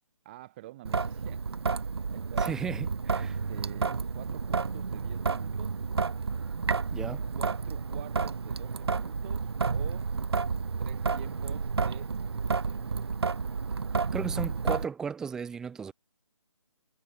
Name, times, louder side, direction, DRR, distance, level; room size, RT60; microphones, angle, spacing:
voice 1, 0.2-1.5 1.7-2.7 3.2-5.9 7.3-10.1 10.8-12.1 12.4-13.2, right 16 dB, 20° right, 2.5 m, -48 dB
Traffic noise roadway noise / Drip / Trickle dribble, 0.8-14.8, right 5 dB, 50° right, 0.7 m, -31 dB
voice 2, 2.4-3.3 6.9-7.3 14.1-15.9, right 6 dB, 5° right, 0.9 m, -35 dB
figure-of-eight pair, 150°, 17 cm